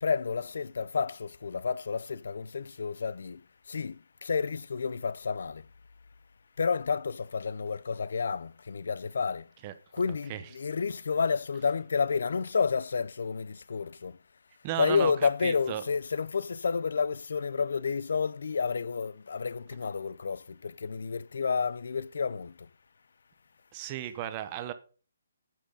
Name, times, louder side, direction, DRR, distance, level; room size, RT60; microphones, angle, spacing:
voice 1, 0.0-3.4 3.7-5.6 6.6-9.5 9.9-14.2 14.8-22.5, left 5 dB, 60° left, 0.5 m, -30 dB
voice 2, 14.6-15.1 15.4-15.8 23.7-24.7, right 12 dB, 20° right, 0.8 m, -34 dB
12.0 x 7.6 x 5.1 m
hypercardioid pair, 175°, 0 cm